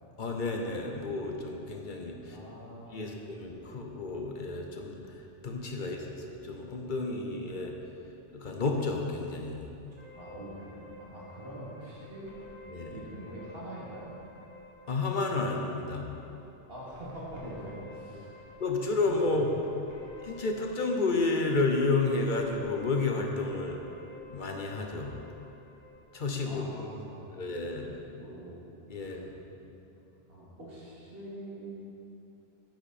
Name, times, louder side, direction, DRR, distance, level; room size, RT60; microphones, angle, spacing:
voice 1, 0.2-2.4 2.9-7.8 8.3-9.7 12.7-13.0 14.9-16.1 18.6-19.6 20.2-23.8 24.3-25.1 26.1-26.9 27.4-27.9 28.9-29.2, left 3 dB, 45° left, 2 dB, 1.0 m, -31 dB
voice 2, 2.2-3.2 5.8-6.1 10.1-12.3 12.9-14.1 16.7-18.3 19.3-19.4 26.5-27.3 27.7-27.8 28.2-28.6 29.0-29.2 29.5-30.0 30.3-31.7, right 1 dB, 55° right, -7 dB, 2.7 m, -44 dB
sound 1, 10.0-27.1, left 1 dB, 80° right, 2.1 m, -52 dB
10.5 x 9.1 x 4.3 m, 2.8 s
omnidirectional pair, 1.2 m